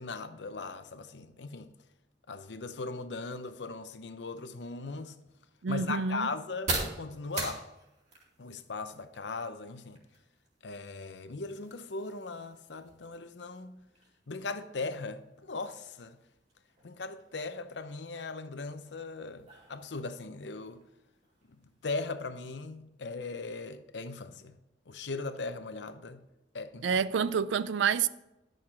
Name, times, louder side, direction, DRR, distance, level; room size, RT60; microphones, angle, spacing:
voice 1, 0.0-1.7 2.3-5.1 5.7-7.6 8.4-10.0 10.6-13.8 14.3-16.2 16.8-20.8 21.8-24.5 24.9-26.2 26.5-27.0, left 3 dB, 70° left, 0.7 m, -39 dB
sound 1, 4.5-22.1, right 2 dB, 40° right, 2.6 m, -44 dB
voice 2, 5.6-6.3 26.8-28.1, right 6 dB, 85° right, 0.4 m, -28 dB
11.0 x 6.4 x 4.4 m
head